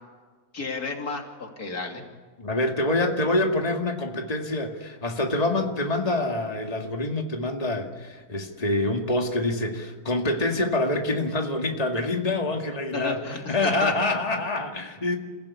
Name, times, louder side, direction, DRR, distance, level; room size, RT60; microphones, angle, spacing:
voice 1, 0.5-2.0 12.9-13.9, left 4 dB, 85° left, 2 dB, 3.4 m, -32 dB
voice 2, 2.4-15.2, left 2 dB, 25° left, 2 dB, 2.2 m, -26 dB
29.0 x 16.0 x 8.5 m, 1.4 s
omnidirectional pair, 1.5 m